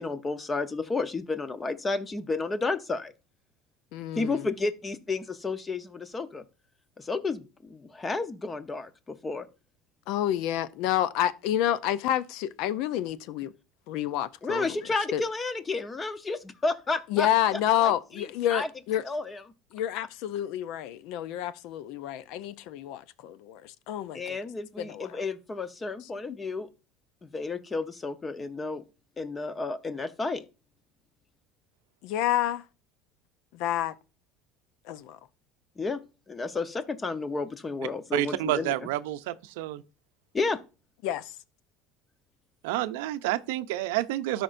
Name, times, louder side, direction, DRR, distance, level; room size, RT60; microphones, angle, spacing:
voice 1, 0.0-3.1 4.2-6.4 7.0-9.5 14.4-17.3 17.8-18.7 19.0-19.4 24.1-26.7 27.2-28.8 29.2-30.4 35.8-36.0 36.3-38.9 40.3-40.6, left 3 dB, 20° left, 0.8 m, -32 dB
voice 2, 3.9-4.5 10.1-13.5 13.9-14.7 15.1-15.2 17.1-19.0 19.7-24.4 24.8-25.1 32.0-32.6 33.5-33.9 34.9-35.2 41.0-41.3, left 12 dB, 70° left, 0.5 m, -29 dB
voice 3, 38.1-39.8 42.6-44.4, right 15 dB, 85° right, 0.5 m, -29 dB
13.0 x 5.1 x 2.6 m
supercardioid pair, 110°, 0 cm